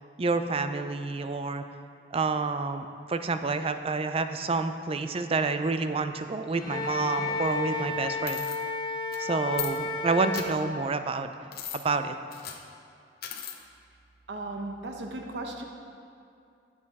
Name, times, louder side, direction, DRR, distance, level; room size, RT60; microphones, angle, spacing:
voice 1, 0.2-1.6 2.1-8.5 9.2-11.3 11.7-12.1, right 4 dB, 35° right, 9 dB, 0.4 m, -29 dB
sound 1, 6.5-7.8 8.8-8.9, left 1 dB, ahead, 1.6 m, -44 dB
Wind instrument woodwind instrument, 6.7-10.6, left 3 dB, 30° left, 0.5 m, -32 dB
sound 2, 8.3-8.6 9.1-9.2 9.5-9.7 10.3-10.5 11.5-11.8 12.3-12.6 13.2-13.6, left 10 dB, 60° left, 0.8 m, -36 dB
voice 2, 14.3-15.6, right 2 dB, 70° right, 2 dB, 0.9 m, -36 dB
10.5 x 7.5 x 4.1 m, 2.5 s
head